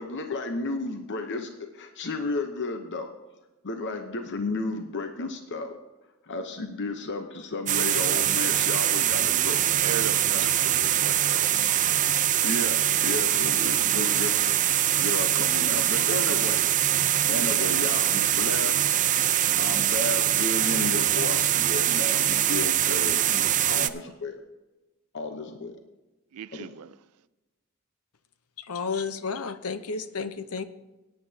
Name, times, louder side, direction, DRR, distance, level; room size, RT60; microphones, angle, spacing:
voice 1, 0.0-3.1 3.6-5.7 6.2-9.6 10.3-10.5 12.4-14.4 15.0-16.7 17.3-19.2 19.6-24.4 25.1-25.7 26.6-26.8, left 3 dB, 55° left, 0.9 m, -33 dB
sound 1, 7.7-23.9, right 11 dB, 35° right, 0.5 m, -23 dB
voice 2, 9.8-11.9 26.3-27.0, right 9 dB, 90° right, 0.4 m, -37 dB
voice 3, 28.6-30.7, left 5 dB, 80° left, 0.8 m, -32 dB
17.0 x 10.0 x 2.8 m
head